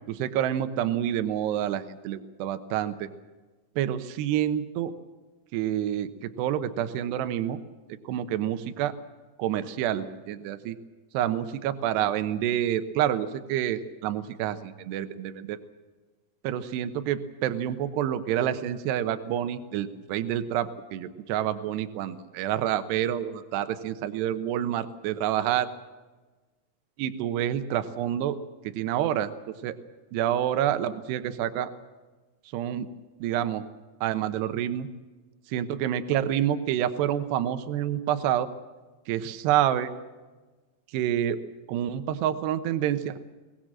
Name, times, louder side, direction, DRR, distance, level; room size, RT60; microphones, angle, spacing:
voice 1, 0.1-3.1 3.8-4.9 5.5-7.6 8.1-8.9 9.4-10.8 11.1-15.6 16.4-25.7 27.0-28.4 28.6-29.3 29.6-29.7 30.1-31.7 32.5-32.9 33.2-33.6 34.0-34.9 35.5-38.5 39.1-39.9 40.9-41.4 41.7-43.2, right 11 dB, 80° right, 10 dB, 3.1 m, -28 dB
22.5 x 19.5 x 7.6 m, 1.2 s
omnidirectional pair, 4.9 m